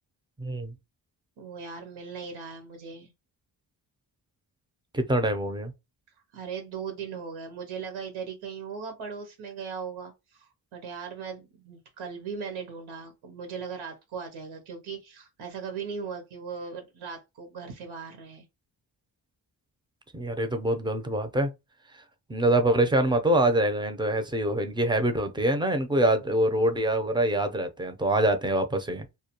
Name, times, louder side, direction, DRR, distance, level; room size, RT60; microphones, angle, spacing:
voice 1, 0.4-0.7 4.9-5.7 20.1-21.5 22.3-29.0, right 1 dB, 10° right, 0.5 m, -25 dB
voice 2, 1.4-3.1 6.3-18.4, right 6 dB, 85° right, 0.8 m, -38 dB
2.2 x 2.2 x 2.8 m
cardioid pair, 70°, 47 cm